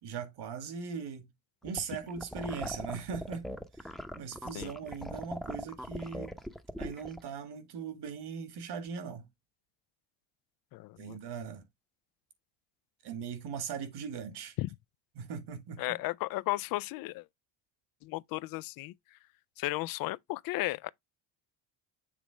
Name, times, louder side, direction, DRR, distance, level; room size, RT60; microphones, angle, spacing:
voice 1, 0.0-1.2 1.6-3.5 3.8-6.3 6.8-9.3 11.0-11.6 13.0-14.6 15.2-16.0, right 6 dB, 60° right, 1.8 m, -39 dB
sound 1, 1.6-7.2, equal, ahead, 0.8 m, -40 dB
voice 2, 10.7-11.2 14.6-14.7 15.8-17.3 18.0-18.9 19.6-20.9, left 18 dB, 55° left, 0.5 m, -34 dB
7.4 x 3.0 x 4.9 m
supercardioid pair, 90°, 44 cm